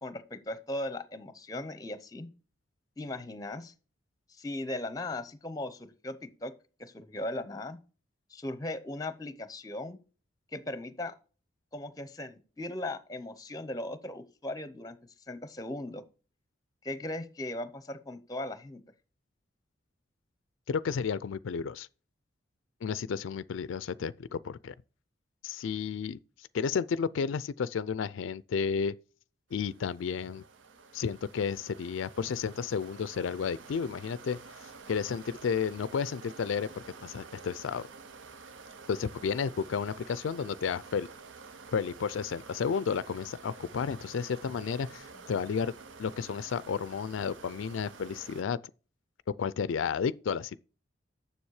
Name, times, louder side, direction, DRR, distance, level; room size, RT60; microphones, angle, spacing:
voice 1, 0.0-2.3 3.0-3.7 4.3-6.5 6.8-7.8 8.3-10.0 10.5-11.1 11.7-15.0 15.3-16.0 16.8-18.8, left 1 dB, 20° left, 0.7 m, -38 dB
voice 2, 20.7-21.9 22.8-24.7 25.4-26.2 26.5-28.9 29.5-30.4 30.9-37.9 38.9-41.1 41.7-45.7 46.0-48.6 49.4-50.6, left 6 dB, 90° left, 0.4 m, -32 dB
sound 1, 29.5-48.4, right 4 dB, 85° right, 0.8 m, -50 dB
7.1 x 6.8 x 4.8 m
head